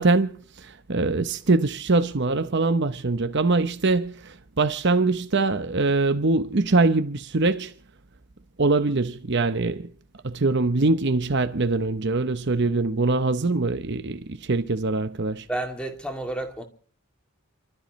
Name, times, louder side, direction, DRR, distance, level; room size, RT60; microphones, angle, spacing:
voice 1, 0.0-7.7 8.6-9.9 10.2-15.5, right 3 dB, 50° right, 0.9 m, -23 dB
voice 2, 15.5-16.6, right 2 dB, 5° left, 2.6 m, -30 dB
29.0 x 13.5 x 3.2 m
head